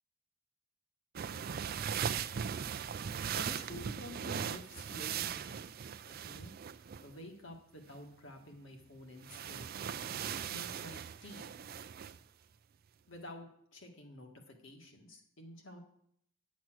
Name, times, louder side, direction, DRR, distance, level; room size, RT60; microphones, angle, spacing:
sound 1, 1.2-7.1 9.2-12.2, right 8 dB, 45° right, 0.4 m, -39 dB
voice 1, 3.3-5.7 6.0-6.5 7.0-9.9 10.4-11.5 13.1-15.8, left 1 dB, 60° left, 2 dB, 1.9 m, -50 dB
10.0 x 7.3 x 6.3 m, 0.70 s
head